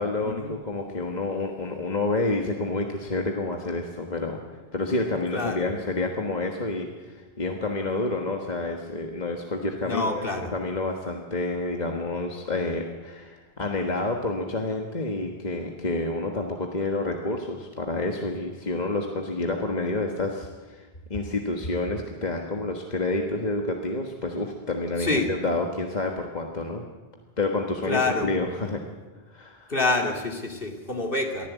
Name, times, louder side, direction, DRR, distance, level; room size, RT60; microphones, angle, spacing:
voice 1, 0.0-10.2 10.5-26.8 27.4-28.8 29.3-29.7, left 2 dB, 45° left, 2 dB, 1.6 m, -29 dB
voice 2, 5.3-5.7 9.8-10.5 25.0-25.3 27.9-28.3 29.7-31.5, left 3 dB, 60° left, 3 dB, 2.8 m, -27 dB
23.5 x 15.5 x 8.3 m, 1.3 s
omnidirectional pair, 1.0 m